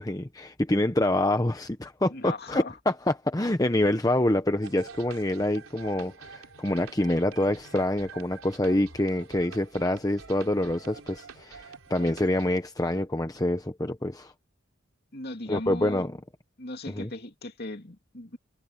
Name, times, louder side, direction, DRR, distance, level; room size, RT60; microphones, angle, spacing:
voice 1, 0.0-14.3 15.5-16.2 16.9-17.1, left 1 dB, 15° left, 0.8 m, -26 dB
voice 2, 2.1-2.8 15.1-16.0 16.6-18.4, left 2 dB, 45° left, 2.6 m, -38 dB
sound 1, 4.6-12.6, right 5 dB, 85° right, 4.0 m, -47 dB
head